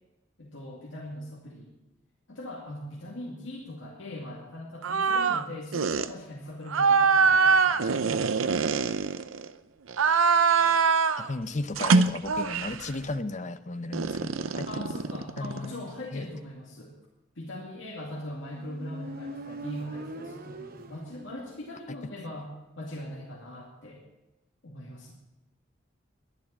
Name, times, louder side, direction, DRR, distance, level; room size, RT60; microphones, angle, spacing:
voice 1, 0.4-1.7 2.3-8.2 14.7-17.0 17.4-24.0 24.6-25.1, left 1 dB, 70° left, -3 dB, 2.3 m, -41 dB
sound 1, 4.8-5.4 5.7-6.1 6.7-9.5 9.9-11.3 11.8-12.8 13.9-15.7, right 5 dB, 90° right, 0.6 m, -23 dB
voice 2, 11.2-15.0 15.4-16.4 21.9-22.0, left 2 dB, 35° left, 11 dB, 0.7 m, -35 dB
Motorcycle, 18.1-21.8, right 1 dB, 45° right, 1.0 m, -42 dB
11.0 x 10.5 x 8.6 m, 1.0 s
head